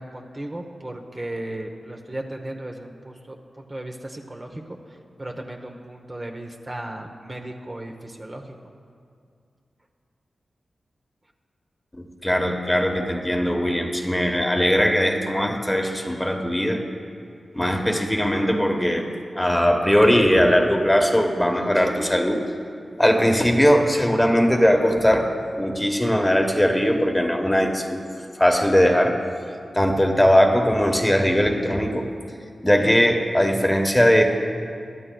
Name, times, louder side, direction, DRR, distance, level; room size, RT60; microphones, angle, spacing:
voice 1, 0.0-4.8 5.2-8.6, right 1 dB, 25° right, 2 dB, 0.9 m, -35 dB
voice 2, 12.0-16.8 17.5-19.1 19.3-22.4 23.0-25.3 25.6-28.0 28.3-29.2 29.7-32.1 32.6-34.2, equal, 10° left, 3 dB, 1.1 m, -20 dB
22.5 x 12.5 x 2.3 m, 2.3 s
wide cardioid pair, 85°, 0 cm